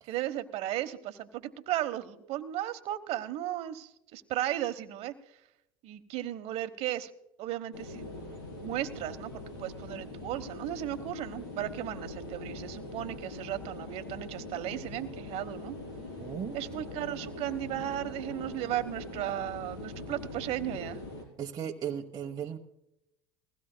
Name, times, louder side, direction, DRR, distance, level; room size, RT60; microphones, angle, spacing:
voice 1, 0.1-5.1 5.8-7.1 7.4-8.1 8.6-9.3 9.6-15.8 16.5-21.0, right 13 dB, 55° right, 10 dB, 1.1 m, -35 dB
sound 1, 7.7-21.3, left 2 dB, 85° left, 4.2 m, -42 dB
voice 2, 16.2-16.6 21.4-22.6, right 8 dB, 30° right, 1 dB, 1.0 m, -36 dB
21.0 x 16.0 x 2.2 m, 0.86 s
supercardioid pair, 95°, 12 cm